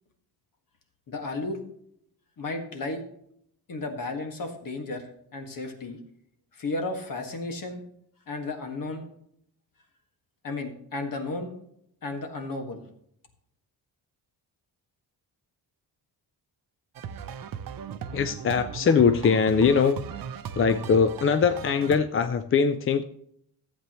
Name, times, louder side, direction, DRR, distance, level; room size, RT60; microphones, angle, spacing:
voice 1, 1.1-1.6 2.4-3.0 3.7-5.1 5.3-6.0 6.5-7.8 8.3-9.1 10.4-11.5 12.0-12.8, left 2 dB, 55° left, 4 dB, 1.8 m, -33 dB
sound 1, 17.0-22.0, right 8 dB, 55° right, 0.7 m, -37 dB
voice 2, 18.1-20.0 20.6-23.0, left 6 dB, 35° left, 9 dB, 0.4 m, -22 dB
14.5 x 8.3 x 3.1 m, 0.71 s
wide cardioid pair, 145°, 40 cm